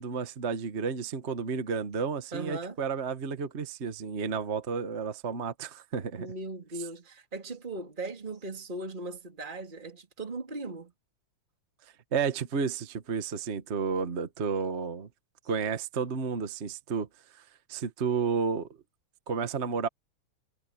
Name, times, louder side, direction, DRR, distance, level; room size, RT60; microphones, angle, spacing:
voice 1, 0.0-6.3 12.1-15.1 15.5-17.1 17.7-18.7 19.3-19.9, right 5 dB, 50° right, 0.8 m, -31 dB
voice 2, 2.3-2.8 6.2-10.9, right 2 dB, 15° right, 3.2 m, -38 dB
omnidirectional pair, 3.6 m